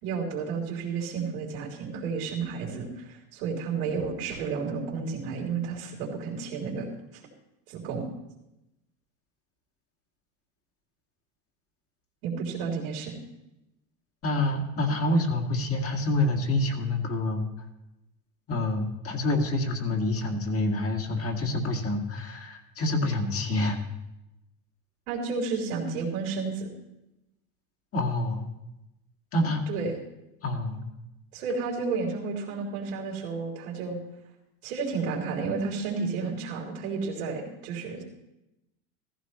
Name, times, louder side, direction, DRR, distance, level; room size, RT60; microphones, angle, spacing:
voice 1, 0.0-7.2 7.7-8.1 12.2-13.1 25.1-26.7 29.7-29.9 31.3-34.0 34.6-38.0, right 5 dB, 80° right, -3 dB, 3.3 m, -32 dB
voice 2, 14.2-17.4 18.5-23.8 27.9-28.4 29.3-29.7 30.4-30.8, left 2 dB, 30° left, 1 dB, 2.2 m, -27 dB
15.0 x 15.0 x 3.1 m, 0.93 s
supercardioid pair, 115°, 43 cm